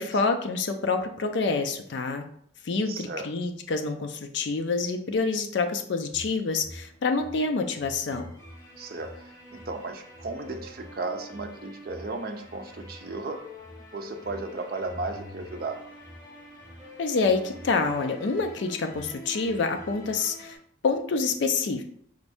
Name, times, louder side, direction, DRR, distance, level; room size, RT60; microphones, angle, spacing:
voice 1, 0.0-2.2 2.6-8.3 17.0-20.6 20.8-21.8, left 4 dB, 65° left, 6 dB, 0.4 m, -27 dB
voice 2, 2.9-3.3 8.8-13.4 13.9-15.8, right 3 dB, 50° right, 5 dB, 0.5 m, -35 dB
sound 1, 6.1-20.5, equal, 15° left, 1.1 m, -45 dB
5.0 x 2.6 x 3.4 m, 0.66 s
head